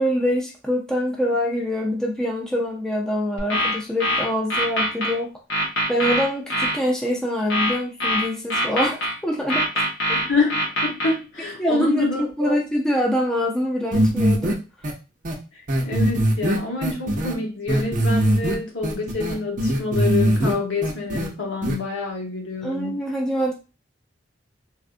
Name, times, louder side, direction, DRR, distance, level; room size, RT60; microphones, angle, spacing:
voice 1, 0.0-5.3 5.9-9.7 11.6-14.6 22.6-23.6, equal, 5° left, -2 dB, 0.5 m, -24 dB
sound 1, 3.4-5.1 5.5-6.8 7.5-9.1 9.5-11.1, equal, 65° left, 1.3 m, -23 dB
voice 2, 10.1-12.6 15.5-23.0, left 3 dB, 85° left, 0 dB, 1.1 m, -27 dB
sound 2, 13.9-14.5 14.8-14.9 15.3-15.4 15.7-17.3 17.7-18.5 18.8-20.5 20.8-21.3 21.6-21.8, right 1 dB, 45° right, 0.6 m, -21 dB
3.4 x 2.4 x 2.4 m, 0.31 s
head